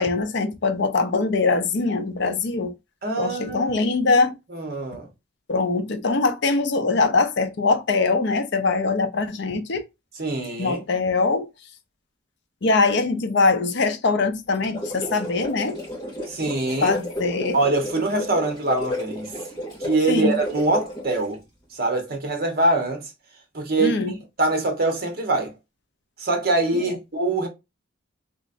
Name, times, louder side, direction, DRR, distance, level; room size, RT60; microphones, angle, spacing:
voice 1, 0.0-2.7 3.2-4.3 5.5-9.8 10.6-11.5 12.6-15.8 16.8-17.6 20.1-20.4 23.8-24.1 26.7-26.9, left 3 dB, 55° left, 0.5 m, -22 dB
voice 2, 3.0-3.8 4.5-5.1 10.2-10.8 16.3-17.0 17.5-19.3 19.8-21.4 21.7-23.1 23.5-24.0 24.4-25.5 26.2-27.5, right 2 dB, 45° right, 0.9 m, -24 dB
sound 1, 14.5-21.3, left 1 dB, 20° left, 1.9 m, -32 dB
3.2 x 3.1 x 2.5 m
head